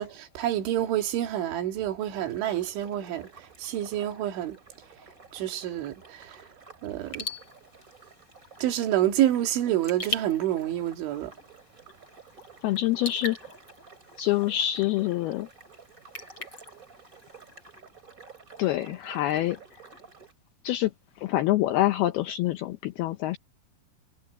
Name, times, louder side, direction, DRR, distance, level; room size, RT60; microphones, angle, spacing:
voice 1, 0.0-4.6 5.3-6.4 6.8-7.3 8.6-11.3, right 12 dB, 75° right, 4.4 m, -28 dB
sound 1, 2.0-20.3, right 4 dB, 20° right, 3.6 m, -52 dB
Raindrop / Drip, 7.0-17.8, left 3 dB, 25° left, 7.9 m, -42 dB
voice 2, 12.6-13.5 14.2-15.5 18.6-19.6 20.6-20.9 21.2-23.4, left 14 dB, 85° left, 2.2 m, -26 dB
omnidirectional pair, 5.6 m